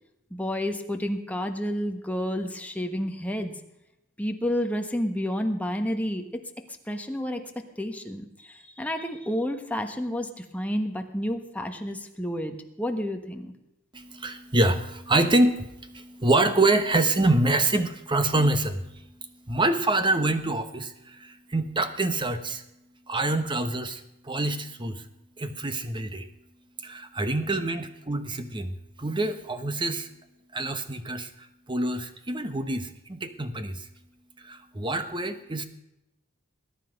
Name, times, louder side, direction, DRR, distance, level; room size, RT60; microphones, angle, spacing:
voice 1, 0.3-3.6 4.2-6.4 6.9-7.4 7.8-13.5, equal, 5° left, 4 dB, 1.3 m, -30 dB
voice 2, 13.9-19.0 19.5-22.6 23.1-25.0 25.4-26.3 26.8-30.1 30.5-33.9 34.4-35.6, right 2 dB, 20° right, 9 dB, 1.1 m, -26 dB
20.5 x 10.0 x 5.2 m, 0.91 s
head